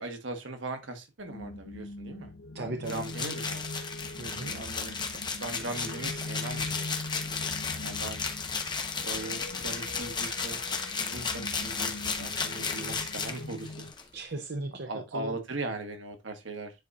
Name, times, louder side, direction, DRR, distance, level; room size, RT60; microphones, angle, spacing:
voice 1, 0.0-3.8 5.4-7.0 7.3-7.4 7.8-8.2 9.0-10.6 11.0-13.9 14.8-16.7, right 2 dB, 90° right, 1.3 m, -39 dB
sound 1, 1.2-13.9, left 2 dB, 80° left, 0.6 m, -42 dB
voice 2, 2.5-3.0 4.2-4.9 12.6-12.7 14.1-15.4, right 2 dB, 60° right, 0.8 m, -37 dB
sound 2, 2.8-14.0, left 5 dB, 25° left, 0.9 m, -34 dB
10.0 x 4.1 x 2.4 m
head